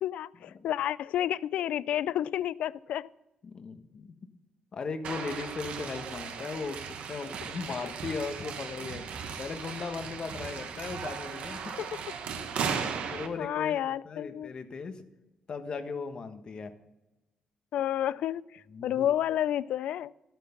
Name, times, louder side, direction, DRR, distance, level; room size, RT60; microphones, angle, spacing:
voice 1, 0.0-3.1 11.8-11.9 13.0-13.1 13.4-14.5 17.7-20.1, left 11 dB, 80° left, 20 dB, 0.3 m, -30 dB
voice 2, 3.4-4.1 4.7-9.0 9.4-11.8 13.1-15.0 15.5-16.7 18.7-19.1, left 4 dB, 45° left, 8 dB, 1.3 m, -37 dB
sound 1, 5.0-13.3, right 6 dB, 75° right, 1.4 m, -37 dB
12.0 x 9.2 x 5.8 m, 1.0 s
cardioid pair, 100°, 2 cm